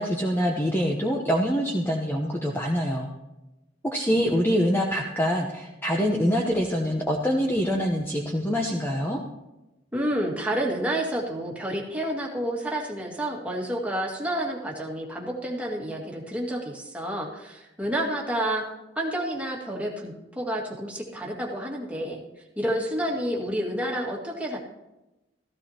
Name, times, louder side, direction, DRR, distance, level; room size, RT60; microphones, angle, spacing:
voice 1, 0.0-3.1 3.8-9.2, equal, 10° left, 0 dB, 0.9 m, -25 dB
voice 2, 9.9-18.7 19.0-22.2 22.6-24.6, right 1 dB, 10° right, -2 dB, 1.9 m, -29 dB
15.0 x 15.0 x 2.9 m, 0.98 s
head